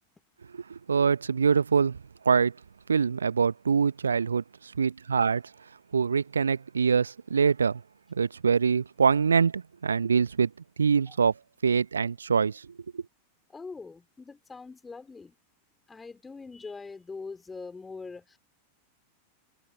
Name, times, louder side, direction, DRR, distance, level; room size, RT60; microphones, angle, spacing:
voice 1, 0.5-2.5 2.9-5.4 5.9-7.8 8.1-10.5 10.8-11.3 11.6-12.7 12.9-13.0, right 6 dB, 75° right, 0.8 m, -24 dB
voice 2, 13.5-15.4 15.9-18.4, left 4 dB, 15° left, 3.9 m, -42 dB
figure-of-eight pair, 90°, 0 cm